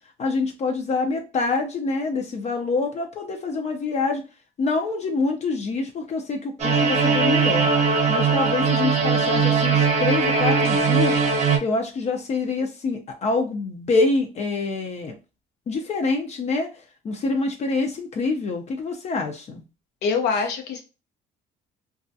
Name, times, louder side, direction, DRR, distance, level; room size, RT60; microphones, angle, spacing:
voice 1, 0.2-4.2 4.6-7.7 8.1-11.2 11.6-15.1 15.7-16.7 17.0-19.6, left 3 dB, 40° left, 4 dB, 0.5 m, -26 dB
sound 1, 6.6-11.6, right 5 dB, 45° right, 0.7 m, -20 dB
voice 2, 20.0-20.8, left 5 dB, 85° left, 4 dB, 0.7 m, -24 dB
2.3 x 2.1 x 2.6 m, 0.31 s
cardioid pair, 110°, 17 cm